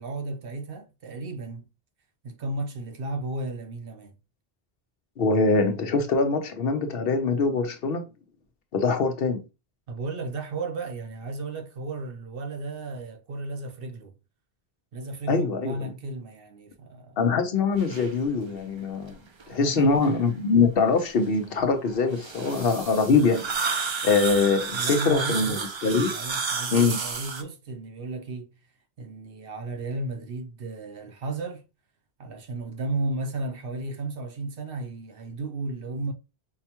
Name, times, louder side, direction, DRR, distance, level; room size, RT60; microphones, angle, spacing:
voice 1, 0.0-1.6 2.2-4.1 9.9-14.1 14.9-17.2 19.2-20.1 24.7-25.7 26.1-28.5 29.0-31.6 32.2-36.1, right 2 dB, 65° right, 0.8 m, -34 dB
voice 2, 5.2-8.0 8.7-9.4 15.3-15.8 17.2-19.2 19.5-23.8 24.0-26.1 26.7-27.0, left 4 dB, 65° left, 0.9 m, -23 dB
sound 1, 17.8-18.1 18.8-18.9 19.4-20.2 21.8-27.4, right 5 dB, 45° right, 0.4 m, -31 dB
5.5 x 2.2 x 2.9 m
omnidirectional pair, 1.1 m